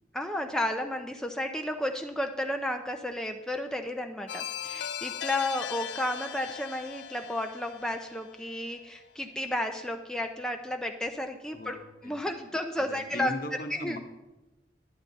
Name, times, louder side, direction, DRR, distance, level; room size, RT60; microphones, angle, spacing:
voice 1, 0.1-11.8 12.0-13.3 13.8-14.0, left 1 dB, 5° left, 4 dB, 0.5 m, -32 dB
sound 1, 4.3-9.0, left 9 dB, 75° left, 0.4 m, -39 dB
voice 2, 11.5-12.3 12.8-14.0, left 1 dB, 50° left, 5 dB, 1.0 m, -39 dB
11.5 x 10.5 x 4.0 m, 1.0 s
head